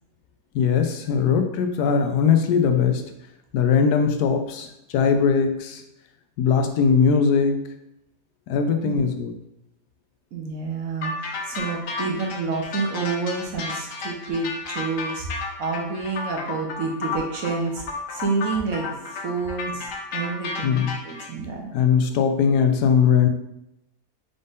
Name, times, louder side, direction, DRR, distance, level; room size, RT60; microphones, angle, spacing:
voice 1, 0.5-3.0 3.5-4.7 4.9-5.8 6.4-7.6 8.5-9.3 20.6-20.9 21.7-23.3, left 6 dB, 90° left, 6 dB, 1.2 m, -20 dB
voice 2, 10.3-17.8 18.1-21.7, right 4 dB, 65° right, 1 dB, 1.2 m, -29 dB
sound 1, 11.0-21.3, left 4 dB, 65° left, 1.0 m, -32 dB
5.2 x 2.6 x 3.6 m, 0.83 s
omnidirectional pair, 1.6 m